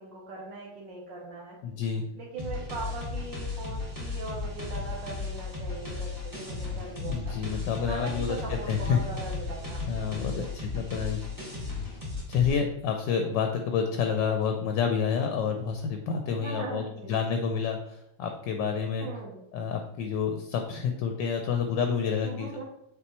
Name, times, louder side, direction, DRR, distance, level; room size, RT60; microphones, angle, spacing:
voice 1, 0.0-1.6 2.2-6.1 6.4-7.4 7.8-10.5 16.3-17.2 19.0-19.4 22.2-22.6, right 3 dB, 65° right, -3 dB, 1.7 m, -40 dB
voice 2, 1.6-2.0 7.0-8.4 8.7-9.0 9.9-11.2 12.3-16.8 17.1-19.1 19.5-22.6, left 6 dB, 70° left, 4 dB, 1.2 m, -29 dB
sound 1, 2.4-12.5, left 3 dB, 10° right, 1.3 m, -35 dB
6.8 x 4.5 x 3.0 m, 0.80 s
omnidirectional pair, 2.2 m